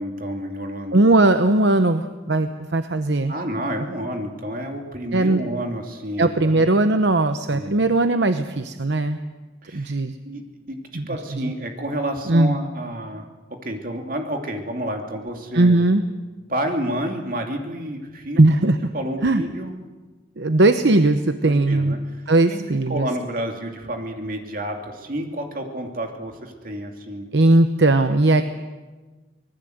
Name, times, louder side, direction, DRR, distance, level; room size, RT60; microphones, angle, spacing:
voice 1, 0.0-1.0 3.3-6.7 7.5-7.7 9.6-10.0 10.2-10.4 10.7-13.2 13.6-15.9 16.5-18.4 18.9-19.7 21.4-22.2 22.5-22.6 22.9-27.3, right 1 dB, 45° right, 3 dB, 2.7 m, -30 dB
voice 2, 0.9-3.3 5.1-5.4 6.2-9.2 9.7-10.2 10.9-11.5 12.3-12.6 15.5-16.0 18.4-18.8 19.2-19.4 20.4-21.9 22.3-23.1 27.3-28.4, right 2 dB, 65° right, 9 dB, 0.9 m, -18 dB
25.0 x 19.5 x 7.9 m, 1.3 s
head